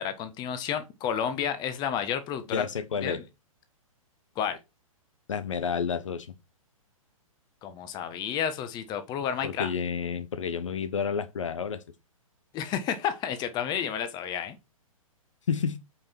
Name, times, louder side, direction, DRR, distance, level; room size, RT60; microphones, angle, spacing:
voice 1, 0.0-2.7 3.0-3.2 4.4-4.6 7.6-9.7 12.5-14.6, left 8 dB, 25° left, 1.3 m, -31 dB
voice 2, 2.5-3.2 5.3-6.3 9.4-11.8 15.5-15.8, left 6 dB, 60° left, 1.0 m, -30 dB
8.7 x 5.4 x 4.5 m
figure-of-eight pair, 115°, 18 cm